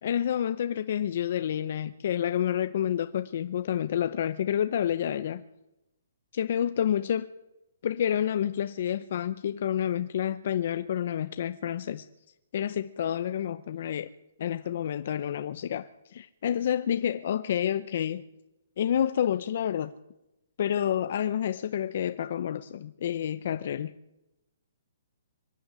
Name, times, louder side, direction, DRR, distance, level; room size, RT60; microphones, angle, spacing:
voice 1, 0.0-5.4 6.3-7.3 7.8-12.1 12.5-14.1 14.4-18.2 18.8-19.9 20.6-23.9, left 9 dB, 50° left, 0.7 m, -29 dB
24.0 x 11.0 x 9.7 m
hypercardioid pair, 170°, 0 cm